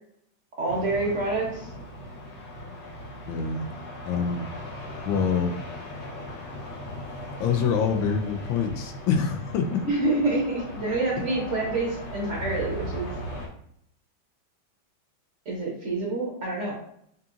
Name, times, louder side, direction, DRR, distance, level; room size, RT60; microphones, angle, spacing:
voice 1, 0.6-1.7 9.8-13.1 15.5-16.7, right 2 dB, 50° right, -4 dB, 1.0 m, -27 dB
sound 1, 0.7-13.5, equal, 45° left, 1.0 m, -38 dB
voice 2, 3.3-3.7 4.1-4.5 5.1-5.5 7.4-9.8, left 6 dB, 80° left, 5 dB, 1.3 m, -25 dB
5.4 x 2.6 x 2.4 m, 0.70 s
omnidirectional pair, 2.1 m